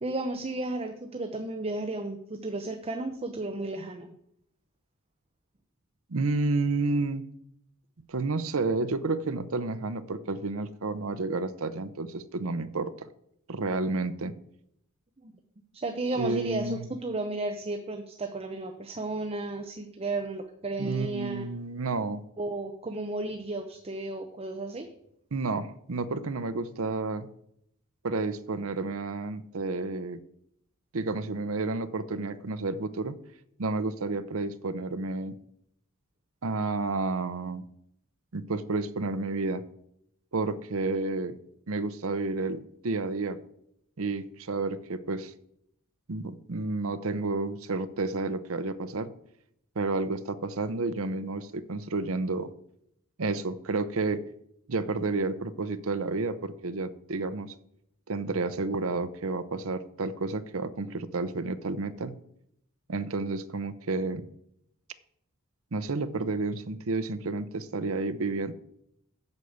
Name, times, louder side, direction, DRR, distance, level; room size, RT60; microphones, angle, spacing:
voice 1, 0.0-4.1 15.2-15.3 15.7-21.4 22.4-24.9, right 2 dB, 30° right, 6 dB, 0.8 m, -33 dB
voice 2, 6.1-7.3 8.1-13.1 13.5-14.3 16.2-16.9 20.8-22.2 25.3-27.3 28.0-30.2 30.9-33.2 33.6-35.4 36.4-37.6 38.3-39.6 40.3-41.4 41.7-43.4 44.0-45.3 46.1-49.1 49.8-52.5 53.2-54.2 54.7-57.5 58.1-62.2 62.9-64.2 65.7-68.5, right 3 dB, 70° right, 12 dB, 0.7 m, -30 dB
8.2 x 6.8 x 7.9 m, 0.74 s
head